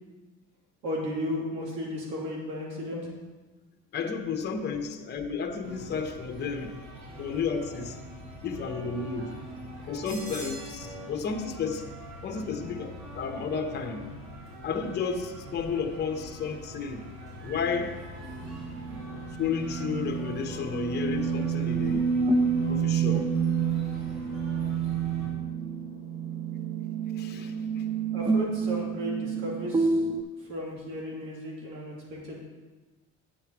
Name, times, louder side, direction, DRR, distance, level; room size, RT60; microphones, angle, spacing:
voice 1, 0.8-3.1 28.1-30.0 30.5-32.4, left 1 dB, 90° right, -3 dB, 3.0 m, -34 dB
voice 2, 3.9-6.8 7.2-8.0 8.4-9.3 9.9-11.9 12.2-14.0 14.6-17.1 17.4-18.0 19.4-22.1 22.6-23.3 27.1-27.8, left 5 dB, 35° left, 4 dB, 0.8 m, -32 dB
sound 1, 5.6-25.3, equal, 60° right, 3.3 m, -43 dB
sound 2, 18.4-30.2, right 5 dB, 15° right, 0.4 m, -29 dB
8.5 x 7.5 x 4.6 m, 1.2 s
cardioid pair, 135°, 31 cm